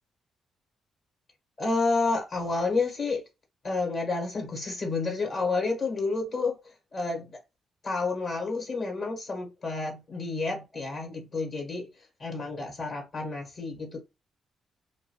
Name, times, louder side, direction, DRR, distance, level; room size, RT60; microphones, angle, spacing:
voice 1, 1.6-3.2 3.6-6.6 6.9-7.4 7.8-11.9 12.2-14.0, left 3 dB, 60° left, 1.3 m, -30 dB
2.5 x 2.3 x 2.9 m
supercardioid pair, 65°, 0 cm